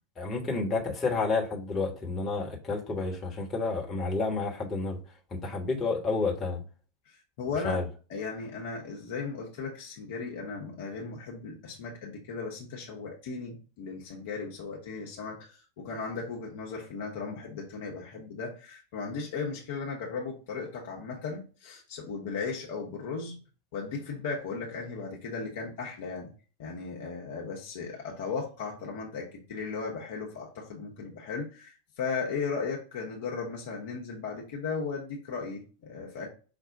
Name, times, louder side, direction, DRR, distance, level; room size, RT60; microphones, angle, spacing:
voice 1, 0.2-5.0 5.3-6.6 7.6-7.9, left 3 dB, 20° left, -2 dB, 1.2 m, -30 dB
voice 2, 7.1-7.8 8.1-23.4 23.7-26.3 26.6-36.3, left 5 dB, 50° left, -1 dB, 1.0 m, -36 dB
5.2 x 2.4 x 3.7 m, 0.37 s
figure-of-eight pair, 90°, 0 cm